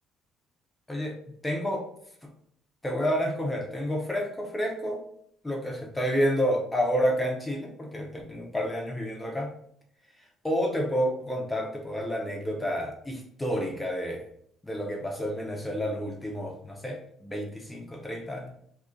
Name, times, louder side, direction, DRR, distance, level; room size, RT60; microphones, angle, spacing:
voice 1, 1.4-1.9 2.8-5.0 5.4-9.5 10.4-14.2 14.6-18.5, equal, 10° left, 1 dB, 0.5 m, -29 dB
2.6 x 2.5 x 3.6 m, 0.66 s
cardioid pair, 155°, 0 cm